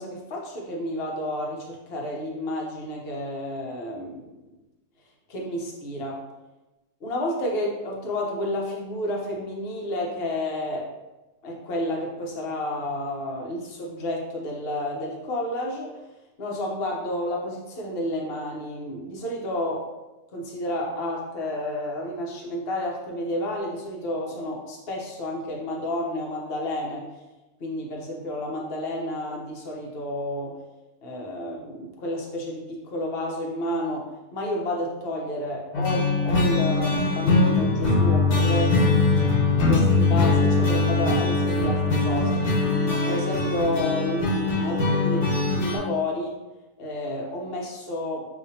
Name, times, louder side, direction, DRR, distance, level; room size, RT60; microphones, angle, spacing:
voice 1, 0.0-4.3 5.3-6.2 7.0-10.9 11.4-16.0 16.4-19.9 20.3-27.1 27.6-30.6 31.0-34.0 34.3-42.5 43.1-46.4 46.8-48.3, left 1 dB, 45° left, -2 dB, 1.0 m, -30 dB
sound 1, 35.7-45.8, left 3 dB, 80° left, 1.5 m, -22 dB
6.9 x 2.7 x 2.7 m, 1.1 s
omnidirectional pair, 1.7 m